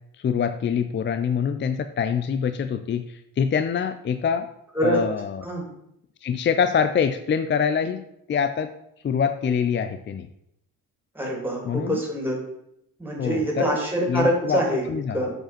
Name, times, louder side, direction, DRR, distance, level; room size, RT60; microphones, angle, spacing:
voice 1, 0.2-4.5 4.8-5.5 6.2-8.0 8.3-8.7 9.0-10.3 11.6-12.0 13.2-13.8 14.1-14.6 14.9-15.3, left 7 dB, 35° left, 10 dB, 0.4 m, -25 dB
voice 2, 11.1-12.4 13.0-15.3, right 1 dB, 5° right, -1 dB, 2.9 m, -25 dB
7.7 x 5.0 x 5.8 m, 0.78 s
cardioid pair, 125°, 33 cm